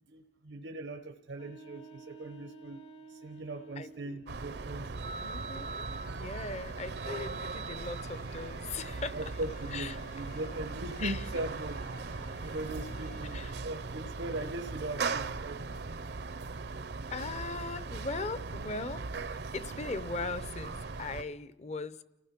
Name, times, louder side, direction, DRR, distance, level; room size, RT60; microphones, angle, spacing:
voice 1, 0.1-2.8 3.1-4.9 9.1-11.8 12.4-15.6, right 2 dB, 85° right, 6 dB, 0.9 m, -40 dB
sound 1, 1.3-4.3, right 4 dB, 75° left, 2.8 m, -52 dB
voice 2, 3.8-4.2 5.2-5.8 6.2-9.2 9.7-10.0 11.0-11.2 13.3-13.5 17.1-22.0, left 3 dB, 40° left, 15 dB, 0.7 m, -39 dB
sound 2, 4.3-21.2, right 4 dB, 60° right, 0.6 m, -39 dB
sound 3, 7.8-13.4, left 2 dB, 55° left, 2.1 m, -53 dB
30.0 x 15.5 x 5.9 m, 1.0 s
head